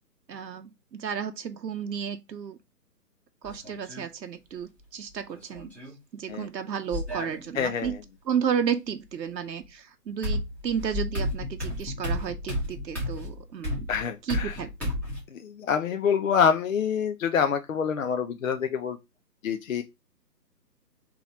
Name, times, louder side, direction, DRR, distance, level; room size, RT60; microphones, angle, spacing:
voice 1, 0.3-2.6 3.4-5.7 6.1-8.0 8.3-13.9 14.2-14.9, right 7 dB, 85° right, 0.8 m, -32 dB
sound 1, 3.4-4.0 5.3-6.0 6.9-7.9 9.6-9.7 10.2-15.2, left 1 dB, 5° left, 1.0 m, -32 dB
voice 2, 7.5-7.9 13.9-14.6 15.3-19.0 19.4-19.8, left 7 dB, 55° left, 0.5 m, -26 dB
3.9 x 2.9 x 4.7 m
figure-of-eight pair, 145°, 50 cm